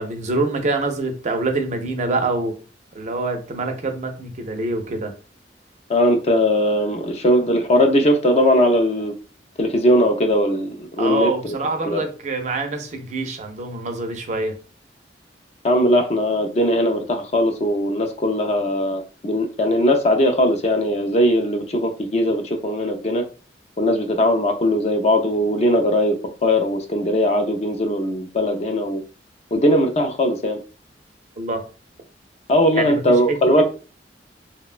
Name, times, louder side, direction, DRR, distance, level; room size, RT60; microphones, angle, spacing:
voice 1, 0.0-2.5 2.9-5.1 11.0-14.5 31.4-31.6 32.7-33.6, right 3 dB, 40° right, 5 dB, 0.4 m, -25 dB
voice 2, 5.9-9.1 9.6-11.3 11.9-12.0 15.6-23.2 23.8-26.1 26.4-29.0 29.5-30.6 32.5-33.6, equal, 35° left, 6 dB, 0.4 m, -19 dB
2.9 x 2.1 x 2.4 m, 0.35 s
head